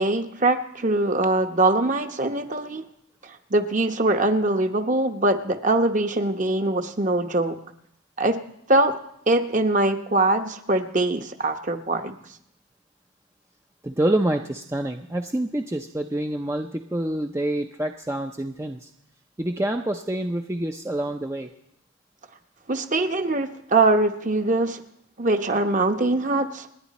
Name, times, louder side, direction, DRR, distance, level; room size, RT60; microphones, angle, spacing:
voice 1, 0.0-2.8 3.5-7.6 8.2-8.4 8.7-8.9 9.3-12.2 22.7-24.8 25.2-26.7, right 2 dB, 35° right, 6 dB, 1.0 m, -22 dB
voice 2, 13.8-18.9 19.4-21.5, right 1 dB, 15° right, 4 dB, 0.5 m, -27 dB
29.0 x 9.9 x 4.2 m, 0.74 s
head